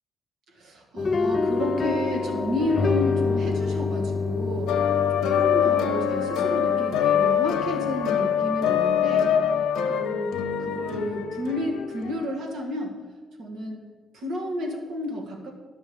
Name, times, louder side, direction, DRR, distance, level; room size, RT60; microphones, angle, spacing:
voice 1, 0.5-4.8 5.1-9.3 9.8-13.0 13.4-13.8 14.1-15.5, equal, 75° right, 1 dB, 1.8 m, -31 dB
sound 1, 1.0-7.2, left 4 dB, 40° left, 0.4 m, -27 dB
sound 2, 4.7-12.3, left 8 dB, 85° left, 0.7 m, -24 dB
10.5 x 6.2 x 5.2 m, 1.5 s
cardioid pair, 90°, 0 cm